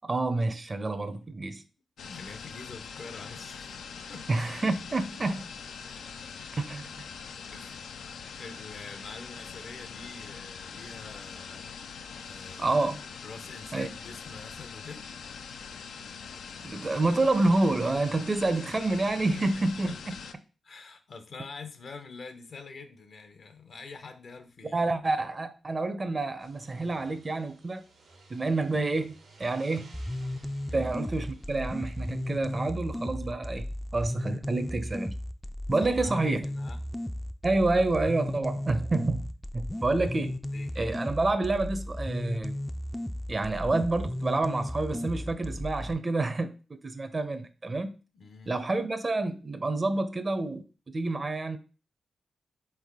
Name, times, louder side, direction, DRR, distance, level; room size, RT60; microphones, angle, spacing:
voice 1, 0.0-1.6 4.3-5.5 6.6-6.9 12.6-13.0 13.7-13.9 16.6-20.1 24.7-27.8 28.3-30.0 30.7-33.7 33.9-35.1 35.7-36.5 37.4-40.4 40.8-42.6 43.3-46.5 46.8-47.9 48.5-50.6 50.9-51.6, right 2 dB, 40° right, 0.6 m, -28 dB
sound 1, 2.0-20.3, left 6 dB, 85° left, 0.3 m, -43 dB
voice 2, 2.0-3.8 4.1-4.3 6.0-6.1 7.5-8.0 8.4-12.8 13.2-15.1 19.4-19.5 19.9-20.2 20.6-24.8 30.7-31.0 35.8-36.8 40.5-40.8 48.1-48.6, left 4 dB, 65° left, 0.7 m, -46 dB
sound 2, 26.3-32.6, right 1 dB, 85° right, 1.1 m, -55 dB
sound 3, 29.9-45.9, left 1 dB, 10° left, 0.3 m, -35 dB
3.9 x 3.4 x 3.6 m
cardioid pair, 50°, 0 cm